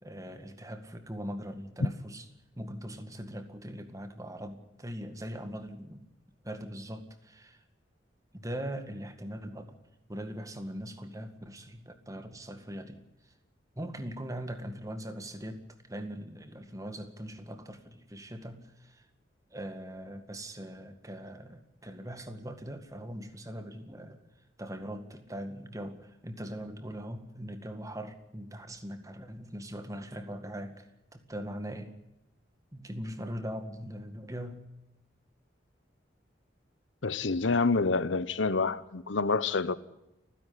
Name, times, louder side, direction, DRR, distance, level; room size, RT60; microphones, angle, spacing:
voice 1, 0.0-2.3 2.5-6.1 6.4-7.6 8.3-9.7 10.1-13.3 13.8-19.1 19.5-24.2 24.6-30.9 31.1-31.9 32.7-34.7, equal, 20° right, 1.9 m, -41 dB
voice 2, 37.0-39.8, left 4 dB, 90° left, 0.9 m, -27 dB
29.5 x 10.5 x 9.8 m
head